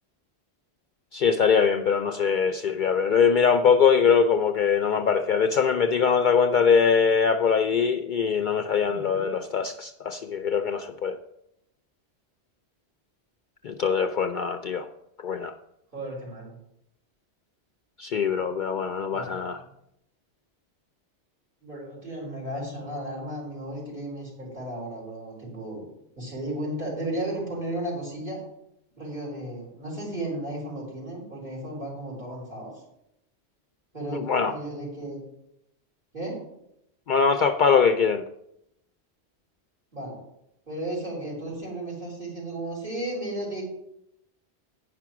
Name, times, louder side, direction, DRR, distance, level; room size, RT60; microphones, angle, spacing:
voice 1, 1.1-11.2 13.6-14.9 15.2-15.5 18.0-19.6 34.1-34.5 37.1-38.2, left 6 dB, 60° left, 8 dB, 0.6 m, -22 dB
voice 2, 8.8-9.3 15.9-16.5 19.1-19.7 21.6-25.9 26.2-28.4 29.0-32.8 33.9-35.2 36.1-36.4 39.9-40.2 40.7-43.6, right 1 dB, 50° right, -3 dB, 4.4 m, -34 dB
9.5 x 5.9 x 5.9 m, 0.80 s
omnidirectional pair, 1.1 m